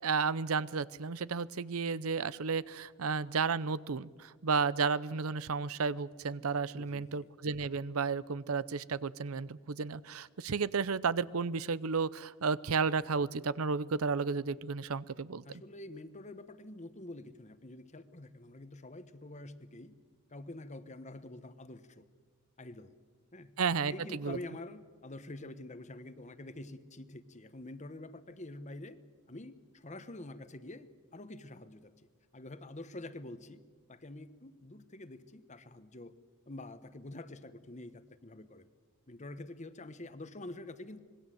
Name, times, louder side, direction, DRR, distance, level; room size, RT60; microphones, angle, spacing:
voice 1, 0.0-15.4 23.6-24.4, right 5 dB, 85° right, 18 dB, 0.7 m, -32 dB
voice 2, 6.7-7.3 15.4-19.9 20.3-22.0 22.6-22.9 23.3-23.5 23.9-29.0 29.3-31.9 32.3-33.6 33.9-36.1 36.5-38.7 39.1-41.0, left 2 dB, 35° left, 12 dB, 1.2 m, -47 dB
26.0 x 20.5 x 7.8 m, 1.5 s
head